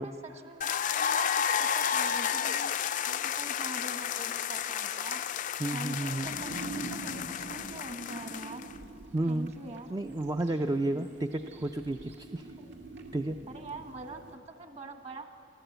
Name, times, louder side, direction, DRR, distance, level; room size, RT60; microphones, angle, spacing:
voice 1, 0.0-2.7 3.1-5.2 5.7-8.7 9.2-10.0 10.9-11.1 12.6-12.7 13.5-15.3, right 2 dB, 35° right, 6 dB, 1.3 m, -44 dB
sound 1, 0.6-8.7, left 8 dB, 45° left, 0.4 m, -32 dB
voice 2, 5.6-6.3 9.1-9.5 9.9-12.5 13.1-13.4, right 2 dB, 20° right, 7 dB, 0.4 m, -31 dB
sound 2, 6.2-14.4, right 3 dB, 75° right, 2.1 m, -45 dB
24.0 x 14.5 x 8.0 m, 2.8 s
head